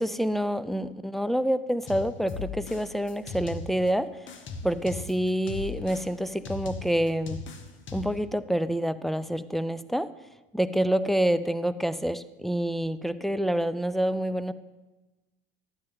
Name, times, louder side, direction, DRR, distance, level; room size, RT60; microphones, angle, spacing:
voice 1, 0.0-4.3 4.6-7.4 7.9-10.1 10.5-14.5, equal, ahead, 12 dB, 0.3 m, -27 dB
sound 1, 1.9-3.9 4.3-8.3, left 4 dB, 40° left, 1.3 m, -38 dB
11.5 x 8.9 x 3.9 m, 1.1 s
hypercardioid pair, 90°, 29 cm